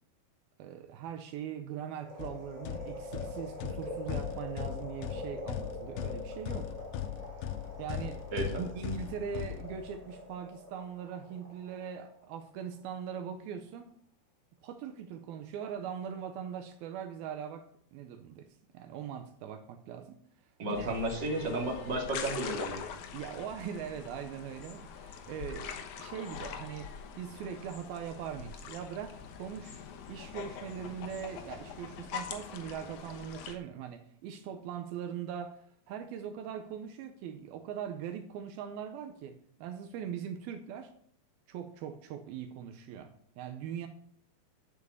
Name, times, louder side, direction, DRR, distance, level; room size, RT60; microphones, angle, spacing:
voice 1, 0.6-6.8 7.8-8.2 8.6-13.9 14.6-17.7 17.9-18.5 18.7-20.2 20.7-20.9 23.1-26.9 27.2-40.9 41.5-43.9, right 8 dB, 80° right, 8 dB, 2.6 m, -41 dB
sound 1, 2.0-12.3 12.7-12.8, equal, 10° right, 2.5 m, -44 dB
sound 2, 2.2-10.2, left 11 dB, 90° left, 2.6 m, -39 dB
voice 2, 8.3-8.6 20.6-22.8, right 2 dB, 30° right, 0 dB, 2.7 m, -33 dB
sound 3, 20.7-33.6, left 7 dB, 65° left, 2.2 m, -44 dB
8.3 x 7.4 x 8.2 m, 0.63 s
omnidirectional pair, 4.4 m